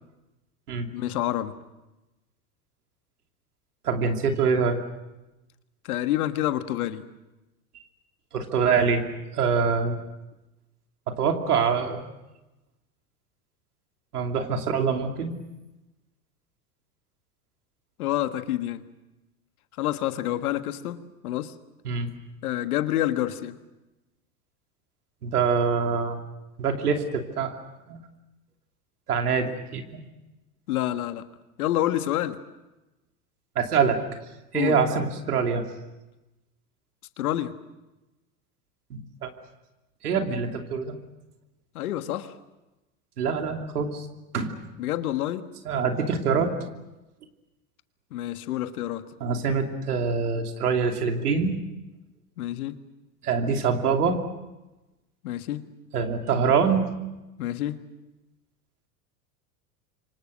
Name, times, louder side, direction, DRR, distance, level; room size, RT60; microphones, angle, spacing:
voice 1, 0.9-1.5 5.8-7.0 18.0-18.8 19.8-21.5 22.4-23.6 30.7-31.2 31.6-32.4 34.5-34.8 37.2-37.5 41.7-42.3 44.8-45.5 48.1-49.0 52.4-52.8 55.2-55.6 57.4-57.8, left 13 dB, 75° left, 10 dB, 1.6 m, -28 dB
voice 2, 3.8-4.8 8.3-9.1 9.3-10.0 11.1-12.1 14.1-15.3 21.8-22.1 25.2-26.2 26.6-27.5 27.9-28.0 29.1-29.8 33.6-34.0 34.5-35.7 38.9-39.3 40.0-41.0 43.2-44.0 44.3-44.5 45.6-46.5 49.2-51.6 53.2-54.2 55.9-56.9, right 5 dB, 85° right, 4 dB, 3.0 m, -24 dB
28.0 x 24.5 x 6.4 m, 1.0 s
hypercardioid pair, 90°, 44 cm